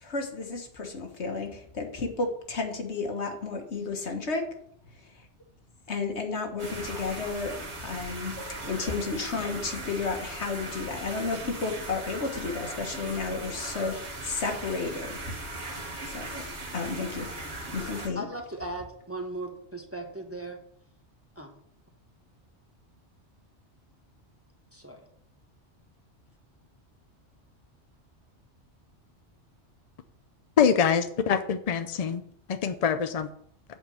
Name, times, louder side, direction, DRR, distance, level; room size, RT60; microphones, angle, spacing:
voice 1, 0.0-4.4 5.0-5.1 5.9-7.5 7.8-8.3 8.6-15.3 16.0-16.4 16.7-17.3 17.7-18.3, left 4 dB, 70° left, 4 dB, 1.6 m, -32 dB
sound 1, 6.6-18.1, right 2 dB, 70° right, 2.1 m, -38 dB
voice 2, 18.1-20.6 21.4-21.5 24.7-25.1, right 1 dB, 15° right, 3 dB, 1.0 m, -37 dB
voice 3, 30.6-32.2 32.5-33.3, left 7 dB, 55° left, 9 dB, 0.4 m, -24 dB
8.1 x 4.4 x 7.0 m, 0.65 s
omnidirectional pair, 1.2 m